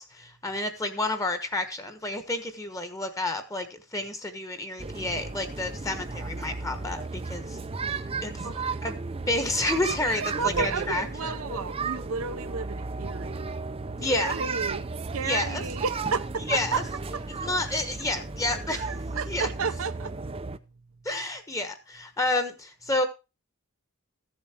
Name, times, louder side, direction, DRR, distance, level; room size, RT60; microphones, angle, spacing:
voice 1, 0.0-7.6 8.2-8.5 8.8-9.0 9.3-11.3 14.0-14.4 15.2-15.6 16.5-16.8 17.4-18.9 19.3-19.5 21.0-23.1, left 2 dB, 15° left, 1.2 m, -30 dB
sound 1, 4.8-20.6, right 3 dB, 25° right, 0.5 m, -34 dB
voice 2, 8.2-8.8 10.0-13.5 14.1-14.9 15.1-16.8 17.1-17.2 18.7-20.1, right 5 dB, 70° right, 0.8 m, -32 dB
14.5 x 7.3 x 4.4 m
head